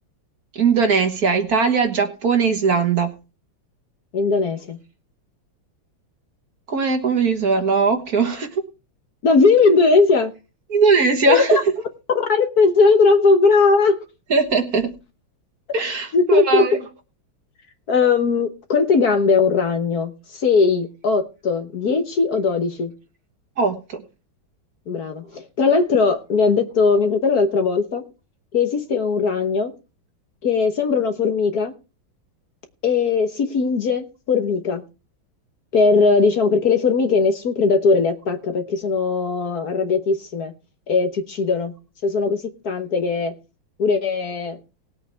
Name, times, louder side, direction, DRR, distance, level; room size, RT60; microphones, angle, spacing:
voice 1, 0.5-3.1 6.7-8.6 10.7-11.8 14.3-14.9 15.7-16.9 23.6-24.0, right 5 dB, 50° right, 6 dB, 1.7 m, -20 dB
voice 2, 4.1-4.8 9.2-10.3 11.3-11.6 12.1-14.0 16.1-16.6 17.9-22.9 24.9-28.0 28.5-29.7 30.4-31.7 32.8-34.8 35.7-40.5 40.9-41.7 42.0-43.3 43.8-44.6, left 4 dB, 55° left, 7 dB, 1.5 m, -19 dB
19.5 x 8.2 x 3.4 m, 0.31 s
omnidirectional pair, 2.2 m